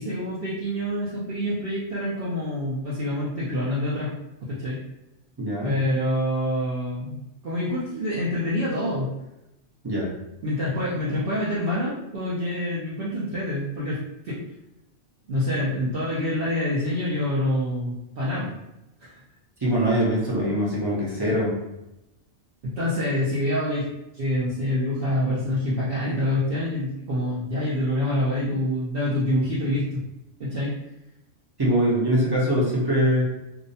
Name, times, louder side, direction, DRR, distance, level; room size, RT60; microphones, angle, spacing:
voice 1, 0.0-4.1 4.5-4.8 5.6-9.1 10.4-14.0 14.2-14.4 15.3-18.5 19.0-19.2 22.6-23.8 24.1-29.9 30.4-30.8, left 1 dB, 60° right, -8 dB, 0.7 m, -26 dB
voice 2, 5.4-5.7 9.8-10.1 19.6-21.6 31.6-33.2, equal, 25° right, -6 dB, 0.5 m, -22 dB
2.6 x 2.1 x 2.6 m, 0.90 s
omnidirectional pair, 1.3 m